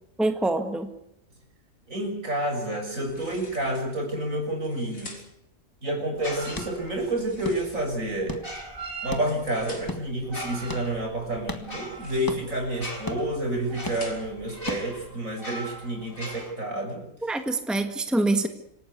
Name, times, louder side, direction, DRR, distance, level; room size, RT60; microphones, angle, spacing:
voice 1, 0.2-0.9 17.2-18.5, right 2 dB, ahead, 7 dB, 1.7 m, -25 dB
voice 2, 1.9-5.1 5.8-8.4 9.0-17.0, right 1 dB, 75° right, 3 dB, 6.8 m, -29 dB
sound 1, 3.0-3.9 4.5-5.5 7.1-8.2 9.0-10.1 11.8-12.6 13.2-14.5, left 2 dB, 80° left, 4.6 m, -48 dB
sound 2, 6.1-15.1, left 2 dB, 15° left, 1.7 m, -40 dB
sound 3, 6.2-7.2 8.3-9.6 10.2-16.5, right 1 dB, 40° left, 3.9 m, -39 dB
27.0 x 17.5 x 8.4 m, 0.78 s
omnidirectional pair, 1.4 m